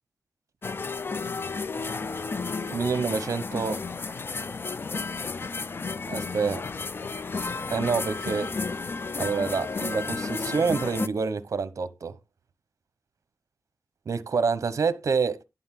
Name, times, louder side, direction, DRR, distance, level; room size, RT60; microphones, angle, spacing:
sound 1, 0.6-11.1, left 4 dB, 35° left, 0.4 m, -32 dB
voice 1, 2.7-3.8 6.1-6.6 7.7-8.5 9.2-12.2 14.1-15.4, right 5 dB, 55° right, 0.9 m, -27 dB
11.0 x 3.8 x 7.4 m
wide cardioid pair, 150°, 6 cm